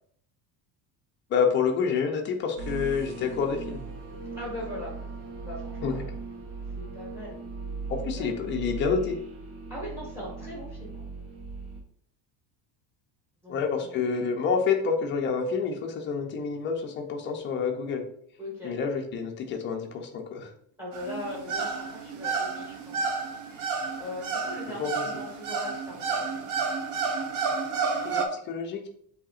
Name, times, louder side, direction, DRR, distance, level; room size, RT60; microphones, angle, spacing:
voice 1, 1.3-4.0 5.8-5.9 7.9-9.2 13.5-18.0 18.6-20.5 24.8-25.1 28.0-28.9, left 6 dB, 25° left, 3 dB, 0.4 m, -28 dB
sound 1, 2.6-11.8, right 4 dB, 90° right, 1.3 m, -38 dB
voice 2, 4.4-4.9 5.4-6.1 6.8-7.4 8.0-8.4 9.7-11.1 13.4-14.0 18.4-18.7 20.8-23.2 24.0-26.4, left 1 dB, 5° right, -4 dB, 1.6 m, -40 dB
sound 2, 20.9-28.2, right 5 dB, 45° right, 0.6 m, -31 dB
7.5 x 2.8 x 2.4 m, 0.67 s
cardioid pair, 175°, 45 cm